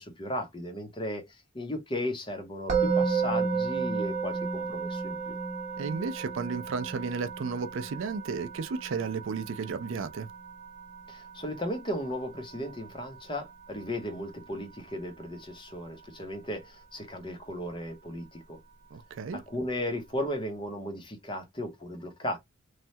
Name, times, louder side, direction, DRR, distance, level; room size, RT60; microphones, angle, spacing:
voice 1, 0.0-5.4 11.1-18.6 19.3-22.4, left 1 dB, 25° left, 0.7 m, -36 dB
Musical instrument, 2.7-13.8, right 5 dB, 35° right, 0.8 m, -33 dB
voice 2, 5.8-10.3 18.9-19.4, right 5 dB, 65° right, 0.4 m, -33 dB
3.1 x 2.2 x 2.7 m
head